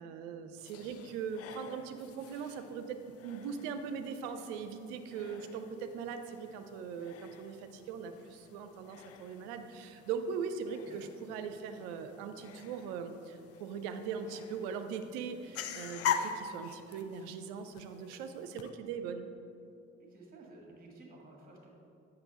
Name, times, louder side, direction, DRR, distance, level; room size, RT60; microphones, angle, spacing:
voice 1, 0.0-3.0 3.2-19.3, right 6 dB, 70° right, 8 dB, 0.6 m, -40 dB
sound 1, 0.6-18.7, left 8 dB, 45° left, 0.5 m, -44 dB
voice 2, 10.6-11.1 20.0-21.7, right 2 dB, 25° right, -1 dB, 1.5 m, -55 dB
8.1 x 5.5 x 3.9 m, 2.7 s
figure-of-eight pair, 50°, 33 cm